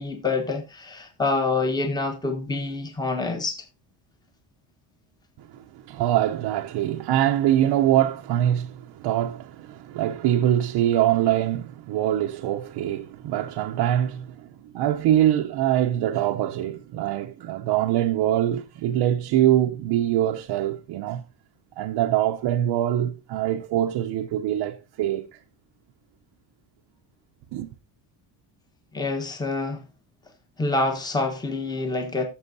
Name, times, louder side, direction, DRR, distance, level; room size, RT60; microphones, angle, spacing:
voice 1, 0.0-3.6 28.9-29.8 30.6-32.2, left 3 dB, 10° left, 1.1 m, -26 dB
voice 2, 5.4-21.2 21.8-25.3 27.5-27.7, right 12 dB, 65° right, 0.8 m, -24 dB
15.5 x 6.9 x 2.7 m
cardioid pair, 145°, 46 cm